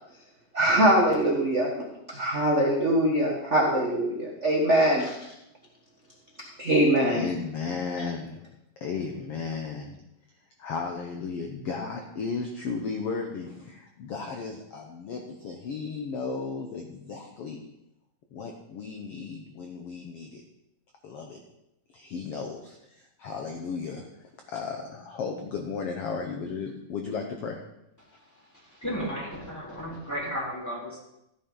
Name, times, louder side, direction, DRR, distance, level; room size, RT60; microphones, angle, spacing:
voice 1, 0.5-1.7 2.1-5.3 6.6-7.2, right 1 dB, 40° right, -2 dB, 1.0 m, -23 dB
voice 2, 7.1-8.5 8.8-10.0 10.6-17.6 18.3-20.4 21.0-21.4 21.9-24.1 24.5-27.6, left 5 dB, 65° left, 3 dB, 1.6 m, -35 dB
voice 3, 28.5-31.0, equal, 5° left, -5 dB, 3.5 m, -34 dB
15.5 x 10.0 x 3.9 m, 0.84 s
omnidirectional pair, 3.7 m